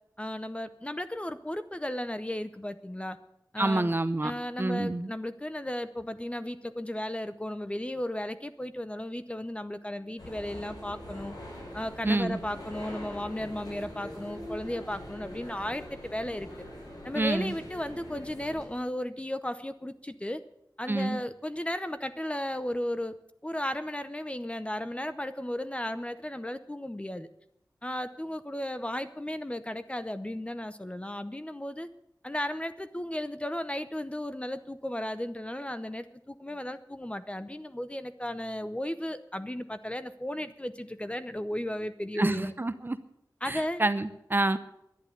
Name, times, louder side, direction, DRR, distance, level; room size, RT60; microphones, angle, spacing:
voice 1, 0.2-3.2 3.5-3.9 4.2-11.3 11.7-16.5 17.0-20.4 20.8-23.2 23.4-27.3 27.8-31.9 32.2-42.5 43.4-43.8, left 1 dB, 15° left, 12 dB, 0.7 m, -35 dB
voice 2, 3.6-4.3 4.6-5.1 12.0-12.4 17.1-17.5 20.9-21.2 42.2-43.0 43.4-44.6, right 2 dB, 30° right, 12 dB, 0.8 m, -27 dB
sound 1, 10.2-18.7, equal, 70° left, 5.3 m, -43 dB
11.5 x 10.0 x 8.5 m, 0.77 s
wide cardioid pair, 80°, 7 cm